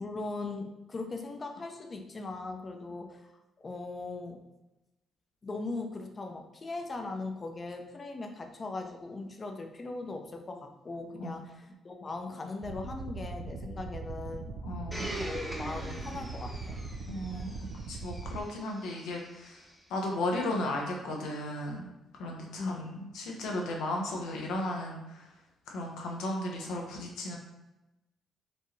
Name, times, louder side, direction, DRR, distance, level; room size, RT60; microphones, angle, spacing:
voice 1, 0.0-3.3 3.6-4.4 5.4-14.5 15.2-16.8 22.6-22.9, left 3 dB, 35° left, 4 dB, 0.6 m, -39 dB
sound 1, 12.6-18.4, right 3 dB, 70° right, 0.3 m, -40 dB
voice 2, 14.6-15.1 17.0-17.5 17.9-21.9 22.2-25.4 25.7-27.4, left 1 dB, 85° left, 0 dB, 0.9 m, -35 dB
Domestic sounds home sounds, 14.9-19.7 20.5-20.6, right 1 dB, 5° right, 0.8 m, -43 dB
4.4 x 2.8 x 3.1 m, 1.0 s
cardioid pair, 90°, 0 cm